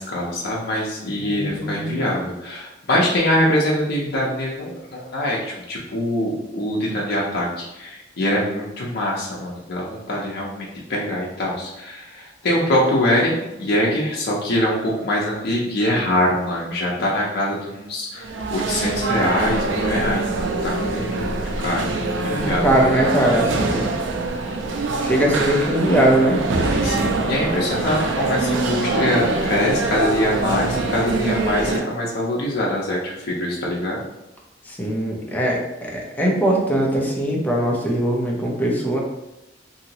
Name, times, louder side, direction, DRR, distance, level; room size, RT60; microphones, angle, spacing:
voice 1, 0.0-22.9 26.8-34.0, left 1 dB, 60° left, -4 dB, 0.6 m, -23 dB
voice 2, 1.2-2.1 22.3-23.9 25.0-26.4 34.7-39.0, right 1 dB, 10° left, -2 dB, 0.6 m, -21 dB
sound 1, 18.2-31.8, right 2 dB, 80° right, 0.4 m, -24 dB
2.8 x 2.7 x 2.8 m, 0.93 s
head